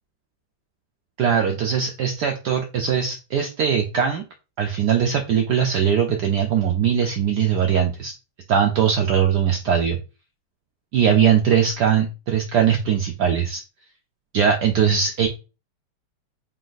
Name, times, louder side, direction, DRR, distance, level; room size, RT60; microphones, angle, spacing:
voice 1, 1.2-4.2 4.6-8.1 8.5-10.0 10.9-13.6 14.3-15.3, right 8 dB, 90° right, 3 dB, 0.9 m, -20 dB
4.0 x 3.9 x 2.5 m, 0.31 s
omnidirectional pair, 2.4 m